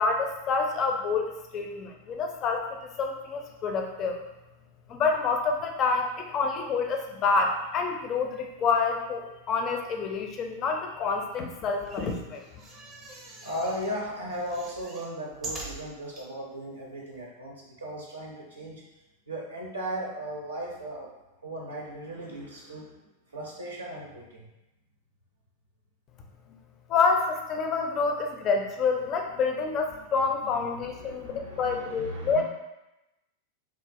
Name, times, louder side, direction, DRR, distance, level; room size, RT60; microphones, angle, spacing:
voice 1, 0.0-2.6 3.0-4.2 4.9-12.4 26.9-32.4, left 4 dB, 30° left, 3 dB, 0.4 m, -27 dB
sound 1, 11.7-14.0 14.3-16.3 16.8-16.9 17.1-17.2, right 2 dB, 25° right, 0.6 m, -43 dB
voice 2, 13.4-18.8 19.3-23.0 23.3-24.5 30.4-32.4, equal, 75° right, -3 dB, 0.5 m, -37 dB
3.0 x 2.3 x 2.5 m, 0.96 s
figure-of-eight pair, 90°, 0 cm